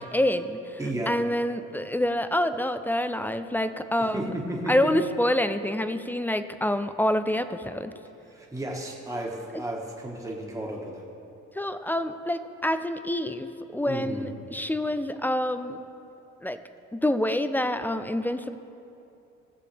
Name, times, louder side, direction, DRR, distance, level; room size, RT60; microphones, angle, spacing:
voice 1, 0.0-0.8 1.1-4.3 4.7-7.9 11.6-15.8 16.4-16.6 16.9-18.6, left 1 dB, 5° left, 11 dB, 0.3 m, -27 dB
voice 2, 0.8-1.2 4.1-4.9 8.3-11.0 13.8-14.3, right 1 dB, 10° right, -2 dB, 1.6 m, -33 dB
16.5 x 6.9 x 3.4 m, 2.8 s
cardioid pair, 90°, 30 cm